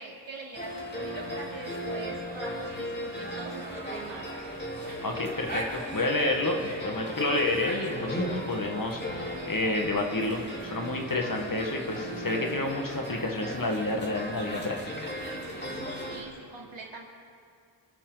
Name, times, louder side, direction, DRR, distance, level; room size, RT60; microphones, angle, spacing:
voice 1, 0.0-4.3 16.0-17.0, right 3 dB, 75° right, -3 dB, 3.2 m, -43 dB
sound 1, 0.5-16.2, equal, 20° left, 3.8 m, -36 dB
voice 2, 5.0-15.1, left 2 dB, 45° left, 2 dB, 1.9 m, -30 dB
27.0 x 12.5 x 4.1 m, 2.4 s
wide cardioid pair, 80°, 47 cm